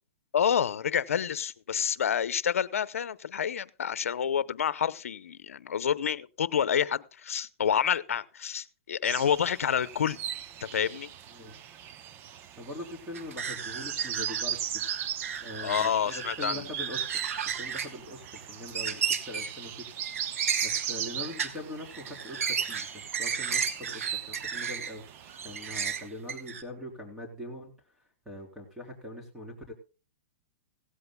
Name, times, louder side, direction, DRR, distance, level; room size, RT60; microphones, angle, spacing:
voice 1, 0.3-10.2 10.7-11.1 15.6-16.7, left 8 dB, 85° left, 0.8 m, -28 dB
sound 1, 9.0-26.1, right 10 dB, 30° right, 0.8 m, -38 dB
voice 2, 12.6-14.8 15.4-17.2 17.5-19.9 20.4-25.0 25.4-27.7 28.3-29.7, left 1 dB, 5° right, 3.8 m, -42 dB
sound 2, 13.1-14.5 14.8-16.4 16.8-18.0 18.3-18.4 18.7-19.6 20.0-21.6 21.9-24.9 25.3-26.6, right 7 dB, 85° right, 1.5 m, -34 dB
16.5 x 16.5 x 2.2 m
hypercardioid pair, 140°, 7 cm